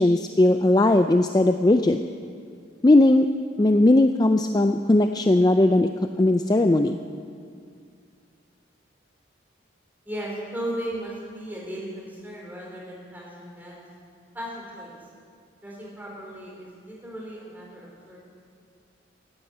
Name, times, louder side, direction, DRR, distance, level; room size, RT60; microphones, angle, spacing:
voice 1, 0.0-2.0 2.8-3.3 3.6-5.9 6.2-7.0, left 2 dB, 20° left, 7 dB, 0.4 m, -18 dB
voice 2, 10.0-13.8 14.3-14.9 15.6-18.2, right 1 dB, 10° right, -4 dB, 4.0 m, -36 dB
14.5 x 9.8 x 9.3 m, 2.2 s
head